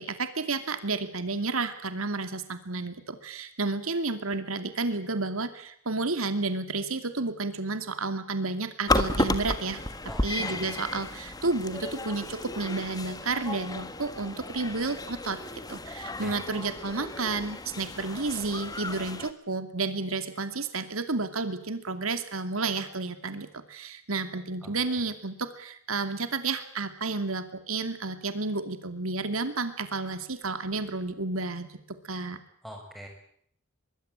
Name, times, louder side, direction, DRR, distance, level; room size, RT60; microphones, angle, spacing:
voice 1, 0.0-9.8 10.2-15.4 15.7-31.7 32.0-32.4, right 3 dB, 85° right, 9 dB, 2.6 m, -31 dB
sound 1, 8.9-19.3, left 2 dB, 20° left, 1.5 m, -33 dB
voice 2, 10.1-10.7 16.2-16.4 24.6-25.0 32.6-33.1, equal, ahead, 2 dB, 7.0 m, -44 dB
24.0 x 23.0 x 9.0 m, 0.66 s
head